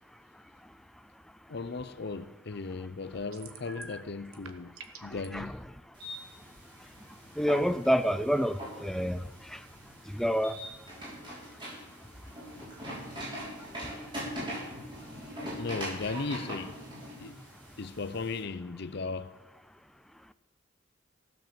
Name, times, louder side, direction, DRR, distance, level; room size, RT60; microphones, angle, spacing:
voice 1, 1.5-4.7 5.0-5.6 15.6-16.8 17.2-17.4 17.8-19.4, left 4 dB, 55° left, 0.6 m, -36 dB
sound 1, 3.3-4.0 4.3-5.3, right 7 dB, 90° right, 1.3 m, -48 dB
sound 2, 5.9-18.4, equal, 25° right, 5.5 m, -42 dB
voice 2, 7.4-9.2 10.1-10.6, equal, ahead, 0.4 m, -27 dB
15.5 x 7.5 x 7.5 m
head